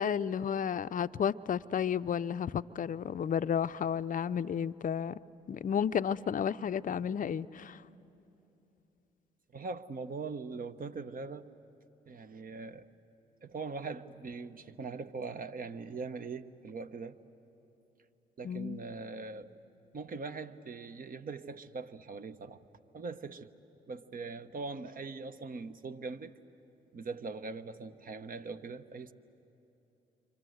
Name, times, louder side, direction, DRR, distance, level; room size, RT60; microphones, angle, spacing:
voice 1, 0.0-5.2 5.5-7.8 18.4-18.8, left 8 dB, 40° left, 13 dB, 0.6 m, -32 dB
voice 2, 9.5-11.5 12.1-12.8 13.4-17.2 18.4-19.5 19.9-22.6 22.9-23.5 23.9-26.4 26.9-29.1, right 4 dB, 45° right, 9 dB, 1.1 m, -41 dB
29.5 x 25.0 x 7.9 m, 2.9 s
hypercardioid pair, 50°, 20 cm